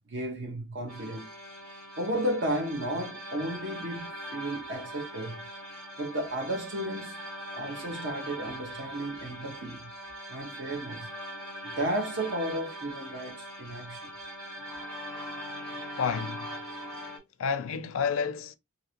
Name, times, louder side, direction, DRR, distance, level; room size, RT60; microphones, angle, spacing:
voice 1, 0.1-1.3 2.0-5.5 6.0-7.2 7.5-9.9 10.3-11.1 11.6-14.1, right 1 dB, 55° right, 1.1 m, -33 dB
sound 1, 0.9-17.2, equal, 85° right, 1.4 m, -41 dB
voice 2, 16.0-16.6 17.4-18.6, left 6 dB, 65° left, 0.4 m, -30 dB
2.8 x 2.7 x 2.8 m
head